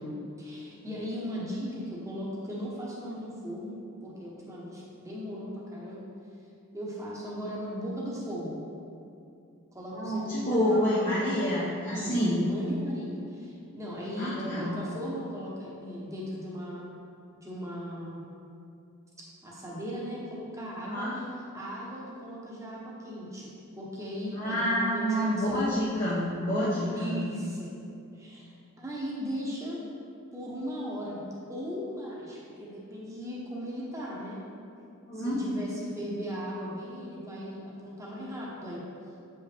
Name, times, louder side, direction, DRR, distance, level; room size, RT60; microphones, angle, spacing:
voice 1, 0.4-6.0 6.7-8.6 9.7-11.6 11.9-16.9 17.4-18.2 19.4-21.2 21.5-23.5 23.8-25.6 26.9-27.7 28.1-28.5 28.8-29.8 30.3-31.2 31.5-34.4 35.1-38.8, equal, 15° right, -5 dB, 1.2 m, -37 dB
voice 2, 9.9-12.4 14.2-14.7 20.8-21.1 24.3-27.2 35.1-35.4, equal, 40° left, -9 dB, 1.0 m, -28 dB
7.3 x 5.4 x 3.5 m, 2.5 s
head